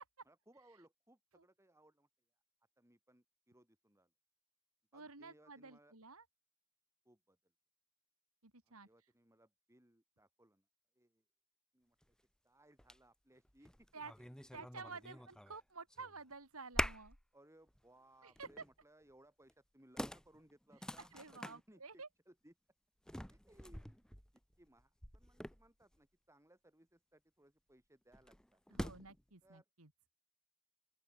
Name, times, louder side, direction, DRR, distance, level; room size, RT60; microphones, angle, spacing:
voice 1, 0.3-2.1 2.8-4.1 4.9-5.9 7.0-7.5 8.7-10.7 10.9-11.2 11.7-12.2 12.4-13.9 14.2-14.6 15.1-15.2 17.3-22.5 23.3-28.6 29.4-29.7, right 1 dB, 15° right, 5.7 m, -67 dB
voice 2, 4.9-6.2 8.4-9.1 13.9-14.1 14.5-17.2 18.2-18.6 21.1-22.1 28.7-29.9, right 4 dB, 75° right, 3.4 m, -52 dB
sound 1, 12.0-12.1 12.8-13.0 13.4-15.6 15.9-16.3 16.7-17.2 17.7-17.8 18.4-18.7 19.5-19.6 20.0-21.6 23.1-26.0 28.1-29.2, equal, 5° left, 1.1 m, -45 dB
open air
head